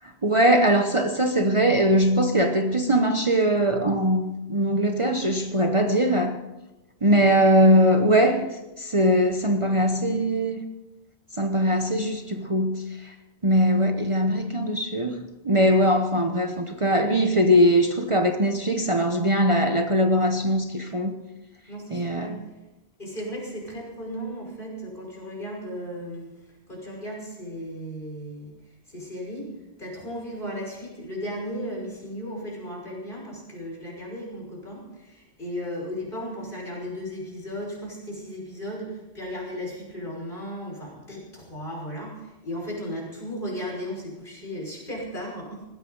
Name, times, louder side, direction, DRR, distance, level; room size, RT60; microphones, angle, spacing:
voice 1, 0.2-6.4 7.0-8.5 8.8-10.6 11.4-13.1 13.4-21.2 21.9-22.4, equal, 30° right, 1.0 m, -21 dB
voice 2, 21.7-22.4 23.0-26.3 26.7-28.5 28.9-29.5 29.8-45.6, equal, 55° left, 5.9 m, -35 dB
19.5 x 16.0 x 4.0 m
omnidirectional pair, 1.1 m